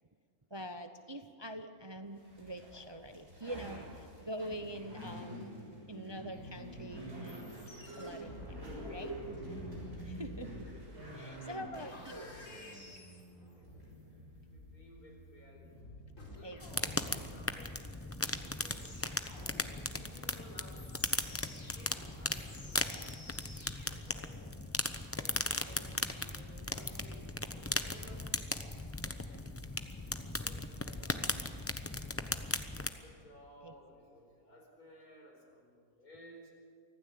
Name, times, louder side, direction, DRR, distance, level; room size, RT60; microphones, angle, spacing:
voice 1, 0.5-5.5 5.9-7.6 8.0-9.2 10.0-10.5 11.1-12.3 16.4-17.3 25.3-25.4 25.7-26.1 33.6-33.7, right 1 dB, 25° right, 7 dB, 0.7 m, -45 dB
sound 1, 2.2-16.1, equal, 45° right, 6.8 m, -48 dB
sound 2, 6.3-24.0, left 1 dB, 60° left, 3.9 m, -52 dB
voice 2, 11.4-13.0 13.6-13.7 14.5-16.0 16.4-16.6 16.8-19.2 19.8-23.0 23.9-28.3 29.3-29.5 30.3-31.2 32.0-32.5 33.0-36.5, left 1 dB, 80° left, 0 dB, 5.2 m, -57 dB
sound 3, 16.6-32.9, left 2 dB, 15° left, 0.7 m, -37 dB
24.5 x 16.0 x 8.4 m, 2.2 s
omnidirectional pair, 1.5 m